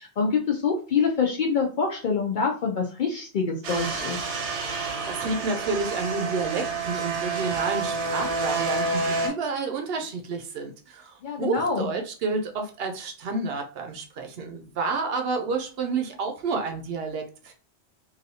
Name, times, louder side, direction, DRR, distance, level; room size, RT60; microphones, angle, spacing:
voice 1, 0.0-4.2 11.2-11.9, left 5 dB, 60° left, 2 dB, 0.5 m, -25 dB
sound 1, 3.6-9.3, right 3 dB, 90° right, 1.1 m, -29 dB
voice 2, 5.1-17.5, right 4 dB, 65° right, 4 dB, 0.7 m, -30 dB
3.1 x 2.6 x 2.7 m, 0.37 s
omnidirectional pair, 1.2 m